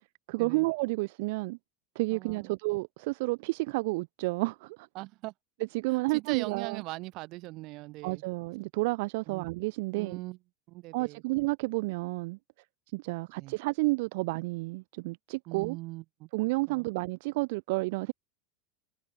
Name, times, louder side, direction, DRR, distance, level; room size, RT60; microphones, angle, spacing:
voice 1, 0.3-1.6 2.0-4.9 5.7-6.8 8.0-10.2 10.9-12.4 12.9-15.8 16.3-18.1, right 24 dB, 70° right, 0.4 m, -31 dB
voice 2, 2.1-2.5 4.9-5.3 6.1-8.2 9.3-9.5 9.9-10.4 10.7-11.2 13.4-13.6 15.5-16.3 16.7-16.9, right 21 dB, 50° right, 1.0 m, -40 dB
supercardioid pair, 130°, 0 cm